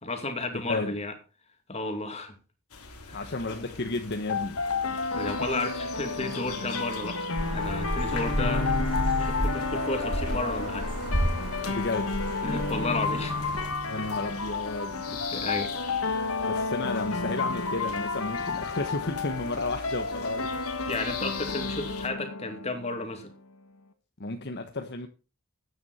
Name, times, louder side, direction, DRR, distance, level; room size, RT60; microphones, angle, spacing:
voice 1, 0.0-1.1 1.7-2.4 3.1-3.3 5.1-8.8 9.2-10.9 12.4-13.6 13.9-14.1 15.3-15.7 16.0-16.1 20.9-23.3, left 2 dB, 30° left, 2.5 m, -33 dB
voice 2, 0.5-0.9 3.1-4.6 11.7-12.1 13.9-15.2 16.4-20.5 24.2-25.1, left 2 dB, 50° left, 1.1 m, -33 dB
sound 1, 2.7-22.1, left 5 dB, 90° left, 3.3 m, -43 dB
sound 2, 4.3-23.2, left 4 dB, 70° left, 2.0 m, -31 dB
sound 3, 7.4-13.7, equal, 25° right, 5.3 m, -31 dB
14.0 x 9.5 x 4.2 m
head